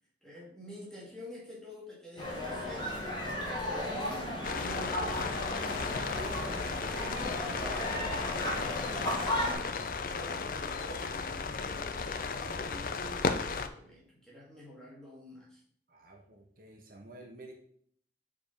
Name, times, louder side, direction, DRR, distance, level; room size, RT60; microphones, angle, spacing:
voice 1, 0.2-3.1 3.6-4.2 4.5-6.0 6.4-12.1 12.3-15.6, equal, 5° left, -6 dB, 2.0 m, -49 dB
sound 1, 2.2-9.5, left 1 dB, 25° left, 1.5 m, -35 dB
sound 2, 4.4-13.7, left 4 dB, 50° left, 0.4 m, -35 dB
voice 2, 15.9-17.5, right 2 dB, 50° right, 3 dB, 0.7 m, -51 dB
4.8 x 4.7 x 5.2 m, 0.64 s
head